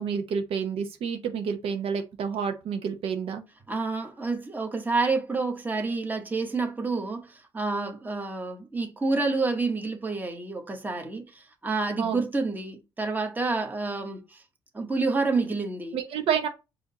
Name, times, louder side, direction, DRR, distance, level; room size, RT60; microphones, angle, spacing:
voice 1, 0.0-3.4 12.0-12.2 15.9-16.5, right 7 dB, 70° right, 0.9 m, -29 dB
voice 2, 3.7-14.4 14.7-16.0, right 3 dB, 20° right, 1.2 m, -29 dB
4.9 x 2.7 x 4.0 m
cardioid pair, 100°, 10 cm